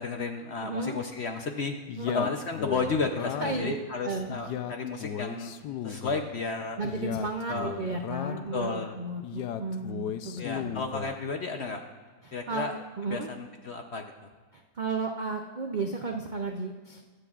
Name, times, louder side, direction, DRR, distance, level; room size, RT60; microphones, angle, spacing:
voice 1, 0.0-1.8 2.1-5.5 5.8-6.8 7.5-7.7 8.5-8.9 10.4-11.8 12.3-12.7 13.1-14.0, left 4 dB, 60° left, 4 dB, 0.7 m, -32 dB
voice 2, 0.6-1.0 2.0-2.3 3.4-3.8 4.0-4.4 6.8-10.7 12.2-13.3 14.5-17.0, right 3 dB, 85° right, 3 dB, 0.4 m, -33 dB
Male speech man speaking, 1.9-3.7 4.3-6.3 6.8-8.5 9.2-11.2, left 10 dB, 80° left, 1.2 m, -35 dB
23.0 x 7.8 x 2.4 m, 1.5 s
omnidirectional pair, 1.8 m